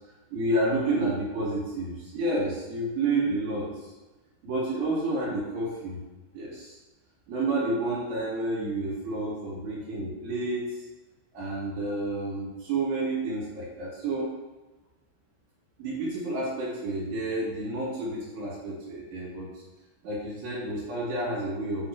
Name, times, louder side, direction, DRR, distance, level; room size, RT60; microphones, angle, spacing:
voice 1, 0.3-3.9 4.4-6.0 6.3-6.7 7.3-10.8 11.3-14.3 15.8-19.5 20.0-21.9, right 2 dB, 60° right, -7 dB, 4.3 m, -30 dB
10.0 x 7.0 x 3.1 m, 1.1 s
omnidirectional pair, 5.8 m